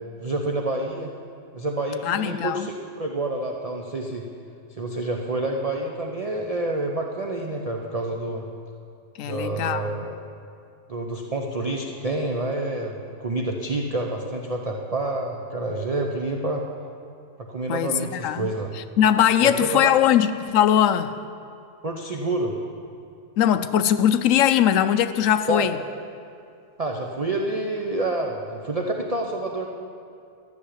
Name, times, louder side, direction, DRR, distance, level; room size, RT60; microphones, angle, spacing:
voice 1, 0.2-1.1 1.5-4.2 4.7-8.4 9.2-10.2 10.9-16.6 17.4-18.8 19.4-20.0 21.8-22.6 25.5-25.7 26.8-29.7, right 2 dB, 35° right, 1 dB, 0.6 m, -28 dB
voice 2, 2.0-2.7 9.2-10.1 17.7-18.5 19.0-21.1 23.4-25.8, left 10 dB, 70° left, 10 dB, 0.8 m, -20 dB
13.0 x 6.5 x 10.0 m, 2.5 s
omnidirectional pair, 1.7 m